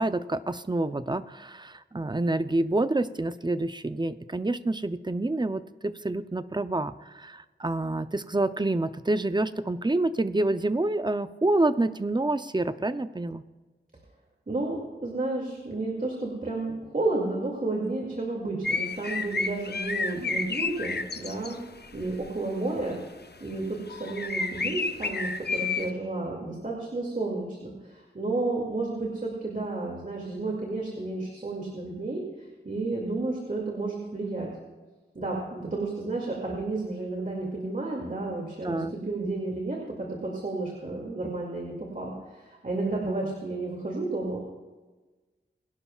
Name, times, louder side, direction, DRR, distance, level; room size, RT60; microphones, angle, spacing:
voice 1, 0.0-13.4 38.6-38.9, right 2 dB, 20° right, 12 dB, 0.6 m, -27 dB
voice 2, 14.5-21.6 21.9-23.0 23.4-32.2 32.6-34.5 35.1-44.4, right 2 dB, 40° right, -2 dB, 2.4 m, -31 dB
sound 1, 18.6-21.6 21.8-22.3 23.5-23.6 23.9-25.9, left 4 dB, 55° left, 0.7 m, -30 dB
22.5 x 11.5 x 2.4 m, 1.3 s
wide cardioid pair, 80°, 21 cm